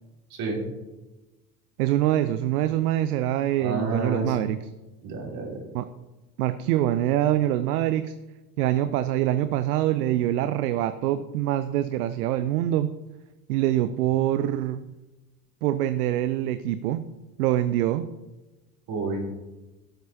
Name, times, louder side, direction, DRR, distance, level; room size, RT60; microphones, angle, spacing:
voice 1, 0.3-0.6 3.6-4.5 5.0-5.6 18.9-19.3, right 3 dB, 45° right, -1 dB, 3.7 m, -29 dB
voice 2, 1.8-4.6 5.7-5.8 6.4-8.1 8.6-12.9 13.5-14.8 15.6-17.0 17.4-18.1, right 13 dB, 65° right, 12 dB, 0.7 m, -24 dB
17.0 x 7.5 x 2.9 m, 1.1 s
hypercardioid pair, 80°, 48 cm